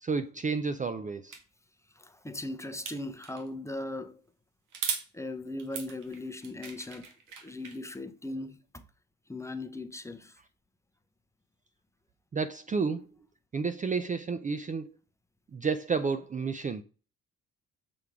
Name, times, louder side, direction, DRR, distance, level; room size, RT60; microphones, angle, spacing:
voice 1, 0.0-1.4 12.3-13.1 13.5-14.9 15.5-16.8, right 5 dB, 25° right, 0.5 m, -31 dB
sound 1, 1.3-1.4 2.9-3.5 4.7-5.1 5.6-7.8, right 6 dB, 85° right, 1.4 m, -37 dB
voice 2, 1.9-4.2 5.1-7.1 7.4-8.8 9.3-10.4, left 2 dB, 10° left, 0.7 m, -39 dB
6.9 x 3.5 x 4.8 m
cardioid pair, 90°, 30 cm